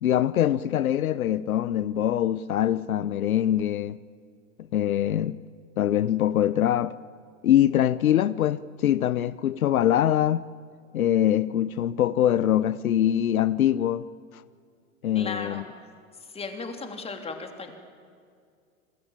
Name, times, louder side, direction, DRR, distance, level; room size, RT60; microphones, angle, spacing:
voice 1, 0.0-4.0 4.7-5.4 5.8-6.9 7.4-10.4 10.9-14.0 15.0-15.6, left 11 dB, 80° left, 0.8 m, -23 dB
voice 2, 15.1-15.6 16.3-17.7, left 4 dB, 15° left, 3.2 m, -35 dB
27.5 x 20.5 x 8.9 m
hypercardioid pair, 115°, 42 cm